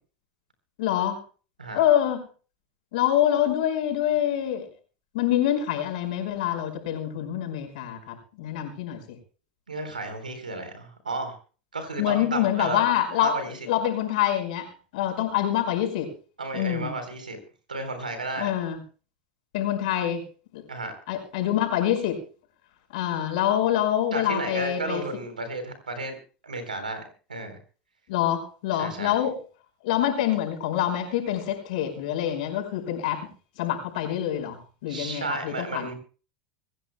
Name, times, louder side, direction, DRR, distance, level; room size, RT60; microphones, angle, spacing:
voice 1, 0.8-1.2 1.7-2.2 2.9-4.7 5.1-9.0 12.0-13.4 13.7-14.7 14.9-16.1 16.5-16.9 18.4-18.8 19.5-20.2 20.5-20.6 21.1-22.2 22.9-25.0 28.1-29.3 29.8-33.3 33.6-35.9, left 11 dB, 65° left, 3 dB, 5.5 m, -26 dB
voice 2, 9.7-11.4 11.7-12.8 13.2-13.6 16.4-17.4 17.7-18.5 20.7-20.9 24.1-26.2 26.4-27.0 27.3-27.6 28.8-29.2 34.9-35.9, right 2 dB, 90° right, 8 dB, 3.9 m, -33 dB
25.5 x 15.5 x 2.3 m, 0.38 s
hypercardioid pair, 85°, 4 cm